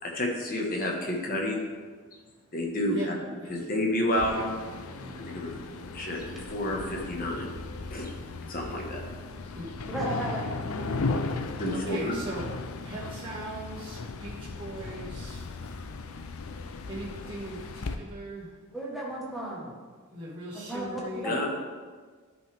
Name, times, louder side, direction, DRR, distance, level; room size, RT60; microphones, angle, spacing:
voice 1, 0.0-1.6 2.5-3.1 3.5-4.6 5.2-5.5 5.9-7.6 7.9-8.1 8.5-9.0 11.6-12.2 21.2-21.5, left 1 dB, 40° left, 1.4 m, -30 dB
sound 1, 4.2-18.0, left 3 dB, 70° left, 0.6 m, -36 dB
voice 2, 5.0-5.3 9.5-9.9 10.9-11.2 11.7-12.4 12.8-15.4 16.9-18.5 20.1-21.3, right 1 dB, 25° right, 2.1 m, -40 dB
voice 3, 9.9-10.5 18.7-19.6 20.7-20.9 21.2-21.5, right 1 dB, ahead, 1.5 m, -33 dB
12.0 x 5.5 x 3.5 m
head